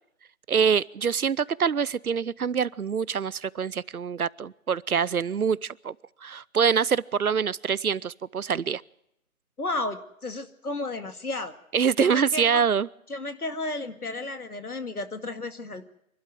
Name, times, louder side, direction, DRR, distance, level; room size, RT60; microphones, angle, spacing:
voice 1, 0.5-5.9 6.2-8.8 11.7-12.9, right 6 dB, 75° right, 22 dB, 0.7 m, -25 dB
voice 2, 9.6-11.5 12.0-12.6 13.1-15.8, left 2 dB, 85° left, 8 dB, 2.2 m, -33 dB
25.5 x 12.0 x 9.3 m, 0.79 s
figure-of-eight pair, 175°, 44 cm